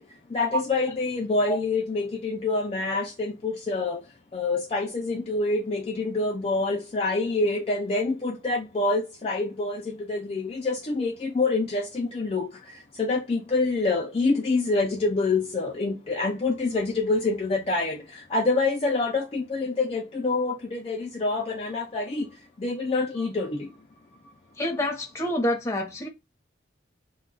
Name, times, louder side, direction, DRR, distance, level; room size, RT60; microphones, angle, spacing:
voice 1, 0.0-4.0 4.3-23.7, left 3 dB, 35° left, 0.4 m, -26 dB
voice 2, 24.6-26.1, equal, 15° left, 0.7 m, -27 dB
2.2 x 2.1 x 3.7 m
head